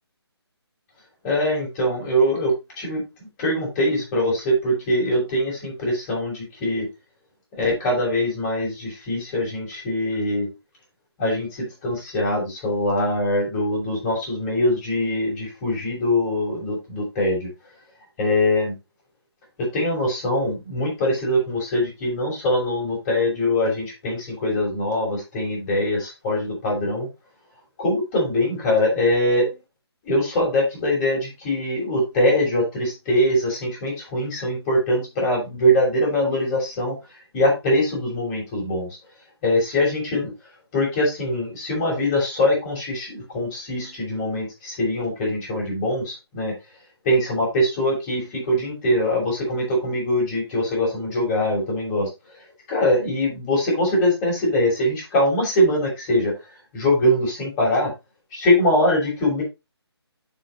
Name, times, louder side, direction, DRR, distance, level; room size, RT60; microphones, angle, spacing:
voice 1, 1.2-3.0 3.4-6.9 7.5-10.5 11.2-17.5 18.2-18.7 19.6-27.1 27.8-29.5 30.0-37.0 37.3-38.9 39.4-40.3 40.7-46.5 47.0-52.1 52.7-56.3 56.7-57.9 58.3-59.4, left 1 dB, 20° left, -3 dB, 6.0 m, -22 dB
12.5 x 5.4 x 3.1 m, 0.23 s
figure-of-eight pair, 155°, 14 cm